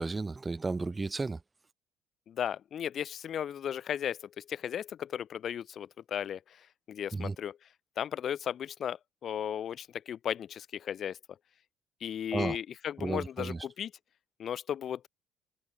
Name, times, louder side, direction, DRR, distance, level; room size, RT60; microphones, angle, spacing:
voice 1, 0.0-1.4 7.1-7.4 12.3-12.6 13.0-13.7, right 3 dB, 25° right, 0.4 m, -33 dB
voice 2, 2.3-6.4 6.9-7.6 8.0-11.2 12.0-13.9 14.4-15.1, left 9 dB, 55° left, 1.2 m, -35 dB
supercardioid pair, 75°, 0 cm